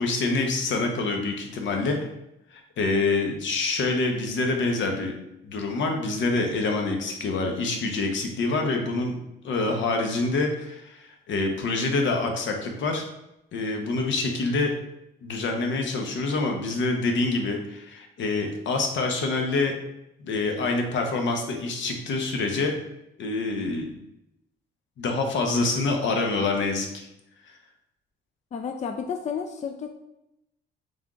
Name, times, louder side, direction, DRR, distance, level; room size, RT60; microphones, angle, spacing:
voice 1, 0.0-2.0 2.5-5.1 5.4-9.2 9.4-13.0 13.5-14.7 15.2-19.8 20.2-22.7 23.2-24.0 25.0-27.1 27.5-27.6, left 3 dB, 70° left, 3 dB, 0.9 m, -26 dB
voice 2, 28.5-29.9, left 6 dB, 35° left, 5 dB, 0.4 m, -31 dB
3.6 x 3.5 x 3.6 m, 0.87 s
cardioid pair, 90°, 20 cm